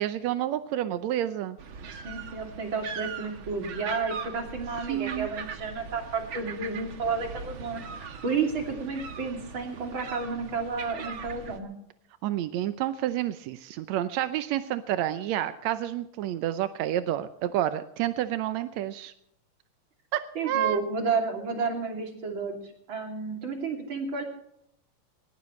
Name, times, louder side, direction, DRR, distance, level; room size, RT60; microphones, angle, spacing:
voice 1, 0.0-1.6 4.9-5.3 12.2-19.1 20.1-20.8, right 12 dB, 80° right, 11 dB, 1.6 m, -29 dB
sound 1, 1.6-11.6, right 6 dB, 55° right, 1.4 m, -40 dB
voice 2, 1.9-11.7 20.3-22.6 22.9-24.2, right 4 dB, 35° right, 3 dB, 3.3 m, -31 dB
19.5 x 19.0 x 3.2 m, 0.75 s
omnidirectional pair, 4.1 m